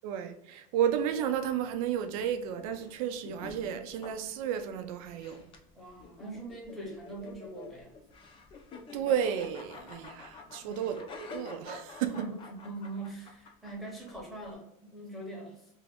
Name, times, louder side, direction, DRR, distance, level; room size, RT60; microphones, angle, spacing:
voice 1, 0.0-5.4 8.9-12.3, right 9 dB, 75° right, 0.5 m, -32 dB
sound 1, 0.9-14.5, left 4 dB, 30° left, 0.5 m, -49 dB
voice 2, 5.7-7.9 10.6-10.8 12.1-15.7, right 2 dB, ahead, 0.9 m, -43 dB
2.6 x 2.5 x 3.4 m
supercardioid pair, 145°, 18 cm